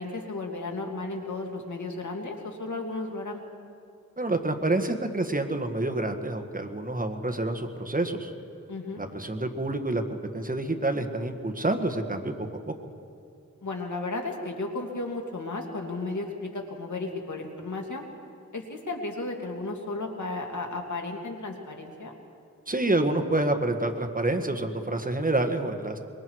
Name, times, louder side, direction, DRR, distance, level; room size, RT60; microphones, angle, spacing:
voice 1, 0.0-3.4 8.7-9.0 13.6-18.1 18.5-22.1, left 2 dB, 75° left, 2 dB, 2.5 m, -34 dB
voice 2, 4.2-8.3 9.0-12.3 12.7-12.8 22.7-26.0, right 2 dB, 30° right, 5 dB, 1.6 m, -28 dB
24.5 x 23.0 x 4.8 m, 2.5 s
wide cardioid pair, 75°, 30 cm